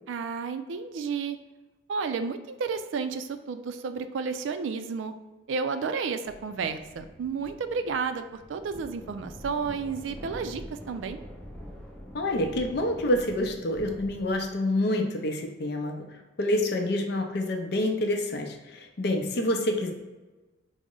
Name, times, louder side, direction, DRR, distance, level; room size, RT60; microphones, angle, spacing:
voice 1, 0.1-1.4 1.9-5.1 5.5-8.2 8.5-11.2, right 5 dB, 85° right, 9 dB, 0.3 m, -31 dB
sound 1, 6.2-14.6, equal, 5° left, 0.5 m, -45 dB
voice 2, 12.1-19.9, left 1 dB, 60° left, 4 dB, 0.5 m, -27 dB
4.8 x 2.1 x 3.7 m, 1.2 s
head